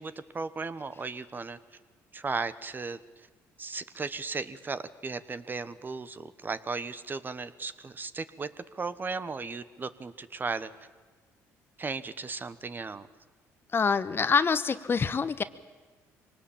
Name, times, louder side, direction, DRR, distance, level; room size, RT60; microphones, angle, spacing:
voice 1, 0.0-1.6 2.1-3.0 3.6-8.5 8.7-10.7 11.8-13.1, right 4 dB, 30° right, 14 dB, 1.1 m, -36 dB
voice 2, 13.7-15.4, left 5 dB, 35° left, 14 dB, 1.0 m, -25 dB
23.5 x 19.0 x 8.6 m, 1.3 s
supercardioid pair, 80°, 6 cm